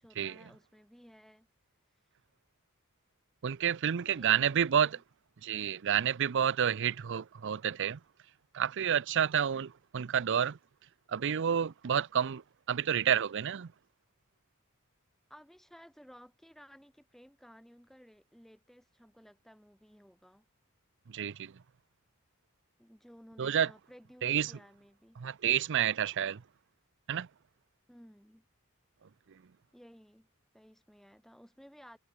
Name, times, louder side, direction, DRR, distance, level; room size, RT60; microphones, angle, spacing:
voice 1, 0.0-1.5 4.0-5.0 15.3-20.5 22.8-25.2 27.9-28.5 29.7-30.3 30.5-32.0, equal, ahead, 2.2 m, -57 dB
voice 2, 3.4-4.9 5.4-8.0 8.5-10.6 11.1-12.4 12.7-13.7 21.1-21.5 23.4-23.7 24.2-24.5 25.2-26.4 27.1-27.3, right 8 dB, 60° right, 0.5 m, -29 dB
head